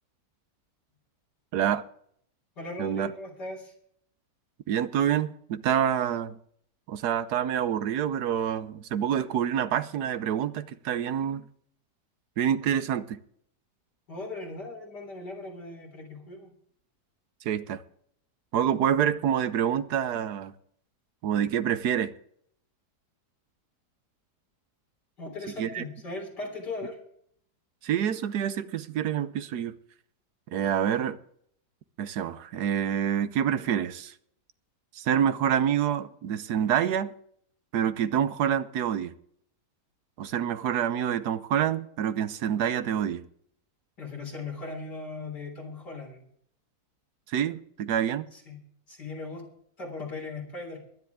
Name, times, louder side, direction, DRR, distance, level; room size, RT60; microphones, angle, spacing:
voice 1, 1.5-1.8 2.8-3.1 4.7-6.4 6.9-11.4 12.4-13.2 17.4-17.8 18.5-20.5 21.2-22.1 25.6-25.8 27.8-29.7 30.5-31.2 32.0-34.1 35.0-37.1 37.7-39.1 40.2-43.2 47.3-48.3, right 9 dB, 70° right, 1.3 m, -27 dB
voice 2, 2.6-3.7 14.1-16.5 25.2-27.0 44.0-46.3 48.3-48.6 48.9-49.4 49.8-50.8, left 3 dB, 75° left, 4.3 m, -38 dB
22.5 x 10.5 x 3.6 m
omnidirectional pair, 1.8 m